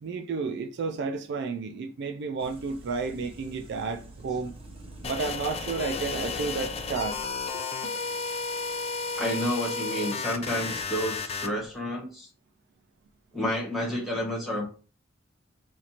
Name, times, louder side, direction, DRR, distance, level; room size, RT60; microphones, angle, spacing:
voice 1, 0.0-4.5 5.0-7.2 7.5-7.9, right 4 dB, 60° right, 0.3 m, -32 dB
sound 1, 2.4-7.4, right 2 dB, 30° right, 0.8 m, -45 dB
sound 2, 5.0-11.5, left 4 dB, 30° left, 0.4 m, -33 dB
voice 2, 9.2-12.3 13.3-14.6, left 1 dB, ahead, 1.4 m, -30 dB
4.3 x 2.5 x 2.8 m
head